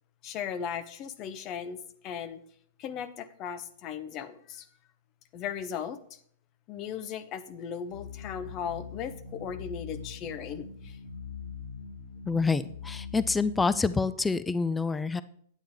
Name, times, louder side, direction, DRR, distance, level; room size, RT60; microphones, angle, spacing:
voice 1, 0.2-2.4 2.8-4.7 5.3-6.0 6.7-11.0, left 8 dB, 40° left, 12 dB, 0.8 m, -37 dB
sound 1, 7.9-13.9, left 6 dB, 55° left, 3.1 m, -42 dB
voice 2, 12.3-15.2, left 4 dB, 10° left, 15 dB, 0.4 m, -27 dB
9.1 x 8.7 x 3.5 m, 0.62 s
hypercardioid pair, 120°, 0 cm